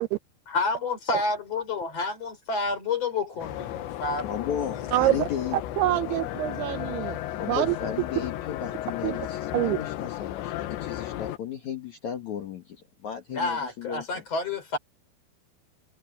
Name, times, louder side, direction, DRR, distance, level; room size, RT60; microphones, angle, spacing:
voice 1, 0.5-4.5 13.3-14.8, left 3 dB, 35° left, 5.2 m, -29 dB
sound 1, 3.4-11.4, left 13 dB, 90° left, 3.4 m, -34 dB
voice 2, 3.9-5.6 7.3-14.2, left 8 dB, 55° left, 2.5 m, -35 dB
voice 3, 4.9-7.2 7.5-7.8 9.0-9.2 9.5-9.8, right 15 dB, 80° right, 2.4 m, -26 dB
omnidirectional pair, 5.0 m